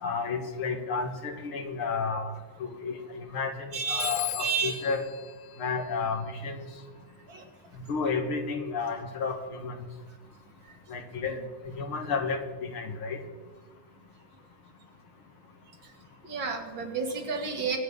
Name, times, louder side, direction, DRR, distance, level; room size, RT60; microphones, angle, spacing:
voice 1, 0.0-2.3 2.6-5.0 5.6-6.6 7.9-9.7 10.9-11.4 11.6-13.2, left 4 dB, 85° left, 4 dB, 2.6 m, -32 dB
voice 2, 3.7-4.8 7.3-7.5 16.2-17.8, right 5 dB, 65° right, 3 dB, 2.8 m, -31 dB
Telephone, 4.0-6.5, left 12 dB, 70° left, 1.0 m, -38 dB
24.0 x 8.5 x 5.3 m, 1.3 s
omnidirectional pair, 2.3 m